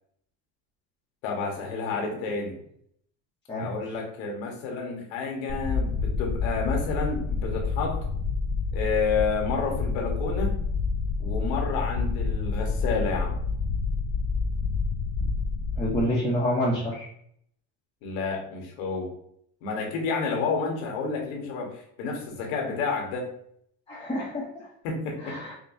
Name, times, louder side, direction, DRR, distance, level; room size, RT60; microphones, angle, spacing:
voice 1, 1.2-2.6 3.5-8.0 8.7-10.6 11.2-13.3 18.0-19.1 19.6-23.3 24.8-25.4, left 4 dB, 80° left, 1 dB, 1.3 m, -30 dB
sound 1, 5.5-16.0, left 4 dB, 40° left, 0.4 m, -28 dB
voice 2, 15.8-17.1 23.9-24.7 25.2-25.5, equal, 10° left, -5 dB, 0.8 m, -28 dB
5.3 x 2.2 x 2.6 m, 0.68 s
cardioid pair, 125°, 42 cm